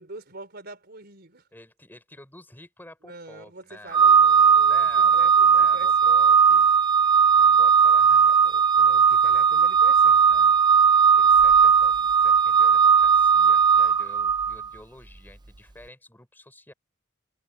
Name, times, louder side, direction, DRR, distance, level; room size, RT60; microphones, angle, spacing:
voice 1, 0.0-1.5 3.0-6.3 8.7-10.3, right 2 dB, 50° right, 4.1 m, -44 dB
voice 2, 1.5-4.1 4.6-6.7 7.0-8.9 10.2-10.6 10.9-16.7, left 1 dB, 10° left, 4.2 m, -49 dB
Organ, 3.9-14.7, right 7 dB, 20° right, 0.5 m, -17 dB
head